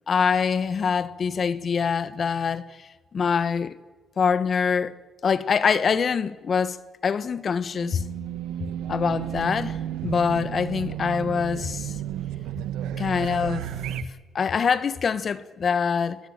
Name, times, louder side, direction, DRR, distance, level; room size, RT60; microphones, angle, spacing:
voice 1, 0.1-3.8 4.2-4.9 5.2-8.0 8.9-11.9 13.0-13.6 14.3-16.2, left 6 dB, 50° left, 1.3 m, -24 dB
Race car auto racing / Alarm, 7.8-14.0, right 10 dB, 90° right, 1.3 m, -32 dB
25.5 x 17.0 x 9.0 m
cardioid pair, 90°, 0 cm